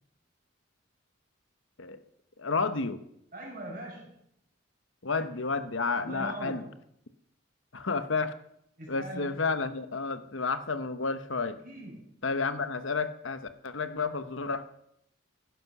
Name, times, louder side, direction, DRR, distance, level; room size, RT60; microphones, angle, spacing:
voice 1, 2.4-3.0 5.0-6.6 7.7-8.3 8.9-11.6 12.2-14.7, left 4 dB, 70° left, 11 dB, 1.1 m, -31 dB
voice 2, 3.3-4.2 6.0-6.7 8.8-9.4 11.6-12.2, right 1 dB, 45° right, -1 dB, 5.5 m, -41 dB
15.0 x 11.5 x 6.1 m, 0.74 s
head